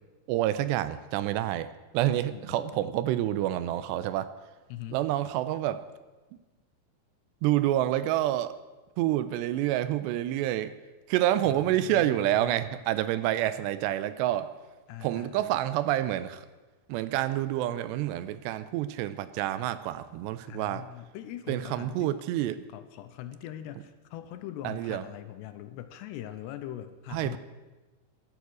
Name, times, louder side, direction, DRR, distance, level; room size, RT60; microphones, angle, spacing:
voice 1, 0.3-4.3 4.9-5.8 7.4-8.6 9.0-10.7 11.1-14.5 15.0-16.5 16.9-20.9 21.5-22.6 24.6-25.0 27.1-27.4, right 13 dB, 80° right, 14 dB, 2.7 m, -28 dB
voice 2, 2.1-2.9 4.7-5.0 11.4-12.6 14.9-15.5 20.5-22.2 22.7-27.4, left 12 dB, 80° left, 11 dB, 2.7 m, -42 dB
12.0 x 11.0 x 8.1 m, 1.2 s
omnidirectional pair, 5.1 m